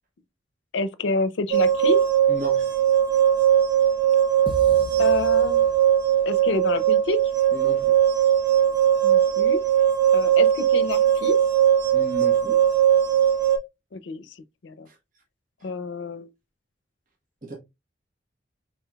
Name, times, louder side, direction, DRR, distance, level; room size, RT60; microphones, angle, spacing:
voice 1, 0.7-2.0 5.0-5.7 6.3-7.2 9.0-9.6 10.1-11.4 13.9-14.4 14.6-14.9 15.6-16.3, left 3 dB, 85° left, 0.5 m, -28 dB
sound 1, 1.5-13.6, right 10 dB, 80° right, 1.7 m, -20 dB
voice 2, 2.3-2.6 7.5-7.9 11.9-12.6 14.9-15.0 17.4-17.6, right 1 dB, 45° right, 1.2 m, -34 dB
sound 2, 4.5-6.3, equal, 25° right, 0.6 m, -37 dB
5.6 x 3.7 x 2.3 m
head